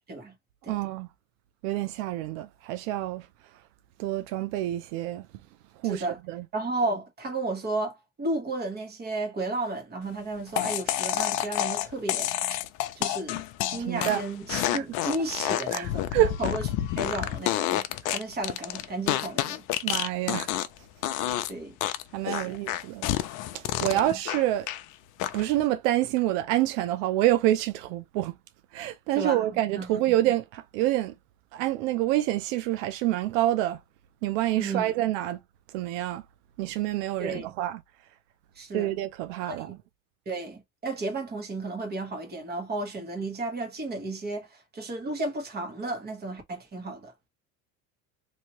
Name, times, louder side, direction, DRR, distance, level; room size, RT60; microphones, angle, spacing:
voice 1, 0.7-1.1 1.6-3.3 4.0-5.3 5.8-6.5 13.9-14.2 14.5-14.8 15.7-16.4 18.0-18.1 19.8-20.7 22.1-23.1 23.5-24.7 25.3-28.4 28.7-31.1 31.5-33.8 34.2-35.4 35.7-36.2 36.6-37.8 38.7-39.8, right 14 dB, 90° right, 0.6 m, -27 dB
voice 2, 5.8-6.2 6.5-12.6 12.9-19.7 21.5-21.8 22.3-22.6 23.9-24.1 29.1-29.8 34.5-34.9 37.2-37.5 38.6-38.9 39.4-39.6 40.3-47.1, right 2 dB, 25° right, 1.2 m, -33 dB
sound 1, 10.6-20.8 21.0-21.5 21.8-24.8 25.2-25.6, left 13 dB, 55° left, 0.5 m, -29 dB
3.1 x 2.7 x 2.9 m
cardioid pair, 135°, 37 cm